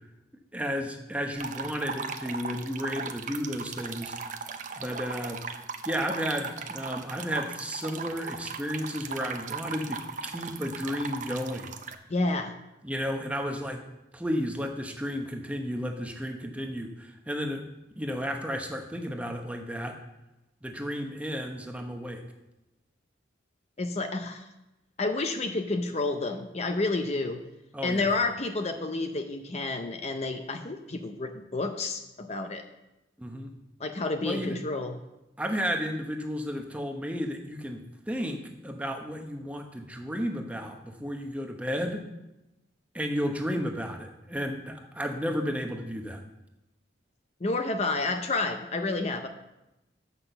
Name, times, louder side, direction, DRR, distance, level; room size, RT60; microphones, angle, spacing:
voice 1, 0.5-4.1 4.8-5.4 5.8-11.8 12.8-13.8 14.1-17.6 18.0-19.9 20.6-22.2 27.7-28.1 33.2-33.5 34.2-34.6 35.4-42.0 42.9-46.2, equal, 5° right, 3 dB, 0.8 m, -33 dB
sound 1, 1.4-11.9, right 5 dB, 45° right, 0.6 m, -38 dB
voice 2, 12.1-12.6 23.8-24.5 25.0-27.4 27.8-32.6 33.8-35.0 47.4-49.3, left 3 dB, 35° left, 6 dB, 0.6 m, -30 dB
8.0 x 5.9 x 6.8 m, 0.95 s
head